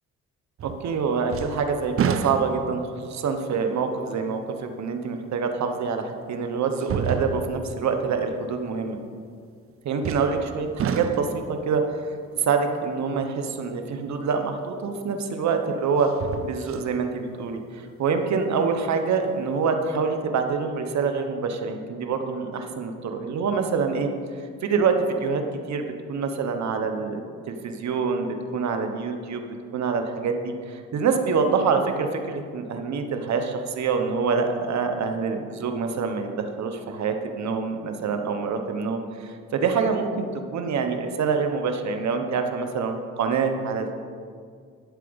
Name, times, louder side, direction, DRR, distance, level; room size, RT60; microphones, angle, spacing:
sound 1, 0.6-1.0 1.3-2.9 3.5-3.6 5.4-5.5 6.8-7.7 10.0-10.5 10.8-11.5 14.5-14.6 16.0-16.9 17.3-17.4, right 7 dB, 50° right, 0.7 m, -29 dB
voice 1, 0.6-9.0 9.8-12.0 12.3-16.1 16.4-24.1 24.6-25.4 25.7-29.4 29.7-43.9, right 5 dB, 65° right, 6 dB, 1.2 m, -26 dB
11.5 x 4.9 x 8.0 m, 2.1 s
cardioid pair, 90°, 30 cm